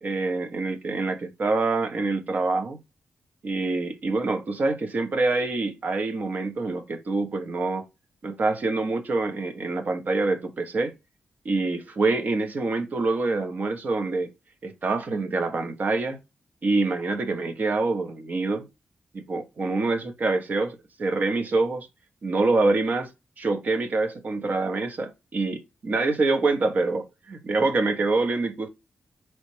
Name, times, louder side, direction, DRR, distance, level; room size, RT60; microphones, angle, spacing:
voice 1, 0.0-2.8 3.4-7.9 8.2-10.9 11.4-14.3 14.6-16.2 16.6-18.7 19.1-21.9 22.2-23.1 23.4-28.7, right 3 dB, 60° right, 0.8 m, -26 dB
4.2 x 3.1 x 3.1 m
cardioid pair, 60°, 3 cm